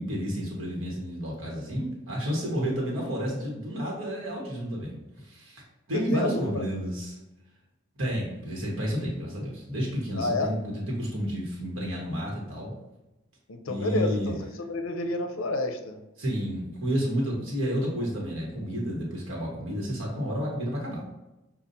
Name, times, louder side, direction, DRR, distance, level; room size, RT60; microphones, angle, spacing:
voice 1, 0.0-5.6 5.9-7.2 8.0-12.7 13.7-14.3 16.2-21.0, equal, 65° right, -3 dB, 1.2 m, -31 dB
voice 2, 6.1-6.6 10.2-10.5 13.5-14.3 14.7-16.0, left 2 dB, 65° left, 6 dB, 0.6 m, -29 dB
6.6 x 2.4 x 2.7 m, 0.98 s
head